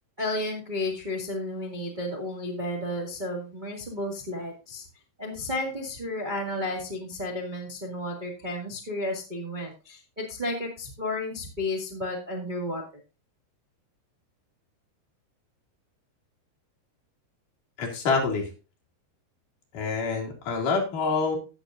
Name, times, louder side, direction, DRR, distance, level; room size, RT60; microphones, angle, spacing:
voice 1, 0.2-4.8 5.2-12.8, left 1 dB, 30° right, 0 dB, 0.9 m, -32 dB
voice 2, 17.8-18.5 19.7-21.4, left 4 dB, 55° left, -1 dB, 3.7 m, -26 dB
16.5 x 6.9 x 2.5 m, 0.31 s
omnidirectional pair, 4.6 m